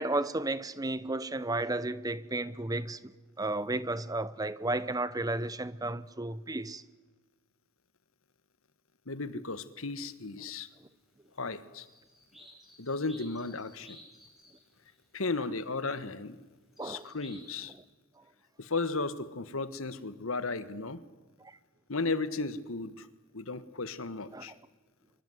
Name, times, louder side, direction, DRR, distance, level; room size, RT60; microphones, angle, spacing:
voice 1, 0.0-3.1 3.4-6.8 16.8-17.1 24.3-24.5, right 2 dB, 15° right, 0.8 m, -33 dB
voice 2, 9.1-10.7 11.4-11.9 12.8-14.0 15.1-16.4 16.8-17.7 18.6-21.0 21.9-23.1 23.3-24.5, left 3 dB, 75° left, 1.5 m, -35 dB
sound 1, 11.8-16.0 16.7-17.5, equal, ahead, 8.0 m, -56 dB
24.5 x 23.5 x 7.9 m
head